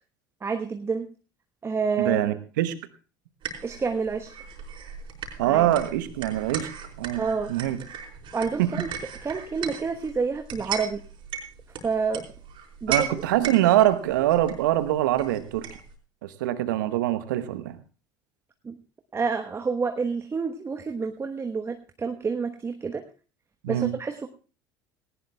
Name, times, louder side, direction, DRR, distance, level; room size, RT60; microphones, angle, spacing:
voice 1, 0.4-1.1 1.6-2.4 3.6-4.3 5.4-5.7 7.2-7.5 8.3-8.9 9.2-11.0 11.8-12.2 12.8-12.9 18.6-18.8 19.1-23.0 23.7-24.3, right 5 dB, 25° right, 6 dB, 1.2 m, -28 dB
voice 2, 2.0-2.8 5.4-6.7 7.0-7.2 7.5-7.8 8.6-8.7 12.9-15.7 16.2-17.8 23.6-24.0, right 13 dB, 70° right, 12 dB, 1.1 m, -24 dB
sound 1, 3.4-15.9, right 7 dB, 50° right, 4.4 m, -37 dB
18.5 x 18.5 x 2.3 m, 0.36 s
figure-of-eight pair, 65°, 11 cm